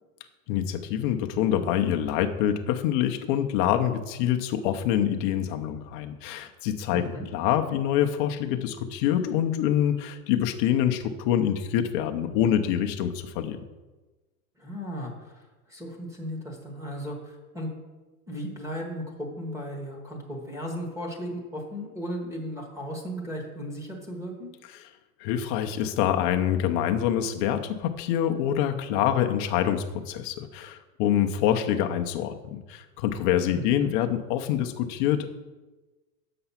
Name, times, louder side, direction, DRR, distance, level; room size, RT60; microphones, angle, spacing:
voice 1, 0.5-13.6 24.7-24.9 25.2-35.3, left 10 dB, 35° left, 6 dB, 0.6 m, -26 dB
voice 2, 6.9-7.3 14.6-17.7 18.3-24.5 33.5-33.9, equal, 5° right, 1 dB, 1.1 m, -36 dB
7.7 x 5.9 x 5.6 m, 1.2 s
supercardioid pair, 145°, 47 cm